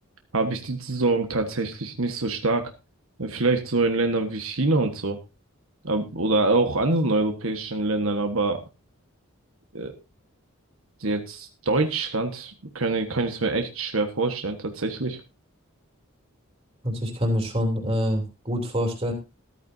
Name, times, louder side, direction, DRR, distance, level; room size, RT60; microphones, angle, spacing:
voice 1, 0.3-2.7 3.2-5.2 5.8-8.6 9.7-9.9 11.0-15.2, right 2 dB, 70° right, 5 dB, 1.5 m, -25 dB
voice 2, 16.8-19.1, equal, 25° right, 2 dB, 3.2 m, -26 dB
14.0 x 14.0 x 2.7 m, 0.27 s
head